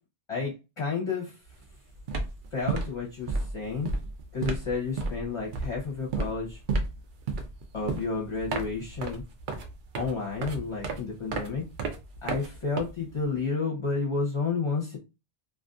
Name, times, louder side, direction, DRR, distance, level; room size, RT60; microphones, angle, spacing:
voice 1, 0.3-1.4 2.5-3.9 4.3-6.6 7.7-9.2 10.0-11.6 12.2-15.0, left 4 dB, 35° left, -3 dB, 0.7 m, -31 dB
sound 1, 1.5-1.7 1.9-13.4, right 3 dB, 60° right, 0.6 m, -33 dB
2.6 x 2.4 x 2.4 m, 0.26 s
omnidirectional pair, 1.0 m